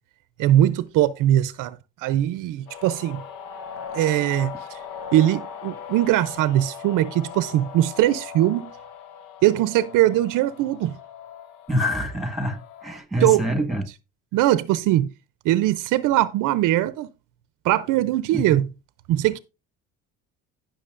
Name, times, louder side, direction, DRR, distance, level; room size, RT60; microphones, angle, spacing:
voice 1, 0.4-3.2 3.9-4.8 5.1-8.7 9.4-11.0 13.2-13.4 14.3-15.1 15.4-17.1 17.6-18.7 19.1-19.4, right 13 dB, 65° right, 0.6 m, -21 dB
sound 1, 2.7-13.0, left 7 dB, 75° left, 1.1 m, -39 dB
voice 2, 11.7-13.8 18.3-18.4, equal, ahead, 1.5 m, -25 dB
16.5 x 6.0 x 2.5 m
cardioid pair, 135°, 34 cm